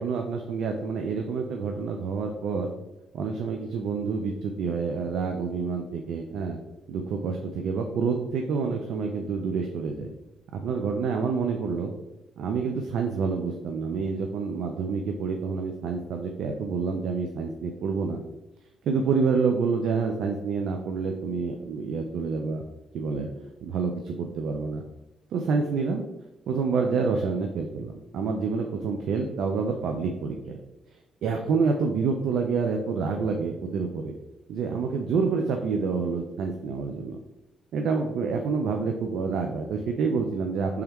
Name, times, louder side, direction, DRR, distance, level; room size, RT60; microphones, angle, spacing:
voice 1, 0.0-2.7 3.1-6.6 6.9-10.1 10.5-11.9 12.4-18.2 18.8-22.6 22.9-23.3 23.6-24.8 25.3-26.0 26.5-30.6 31.2-34.1 34.5-37.2 37.7-40.8, right 5 dB, 75° right, 3 dB, 0.4 m, -28 dB
3.4 x 3.0 x 3.4 m, 0.95 s
cardioid pair, 90°, 0 cm